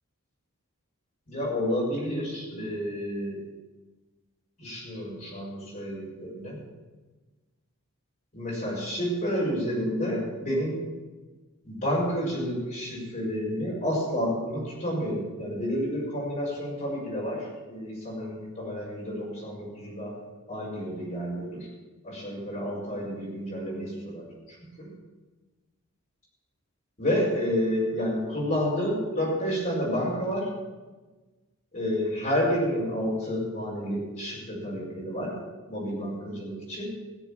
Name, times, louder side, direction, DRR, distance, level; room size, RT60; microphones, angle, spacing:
voice 1, 1.3-3.4 4.6-6.6 8.3-10.8 11.6-20.1 20.5-21.7 22.0-24.9 27.0-30.5 31.7-35.3 35.7-36.9, equal, 40° left, -8 dB, 5.1 m, -30 dB
17.0 x 7.2 x 7.2 m, 1.2 s
head